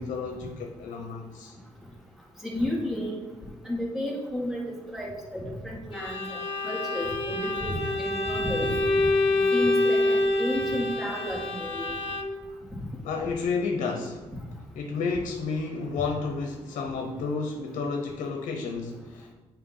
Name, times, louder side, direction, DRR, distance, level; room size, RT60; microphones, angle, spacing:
voice 1, 0.0-1.6 13.0-14.2 14.8-19.3, left 4 dB, 85° left, 3 dB, 0.8 m, -31 dB
voice 2, 2.4-3.2 3.7-4.6 4.9-9.0 9.3-11.9, left 1 dB, ahead, -4 dB, 2.1 m, -32 dB
Bowed string instrument, 5.9-12.5, left 2 dB, 50° left, 1.0 m, -27 dB
8.5 x 2.9 x 5.6 m, 1.3 s
cardioid pair, 90°, 13 cm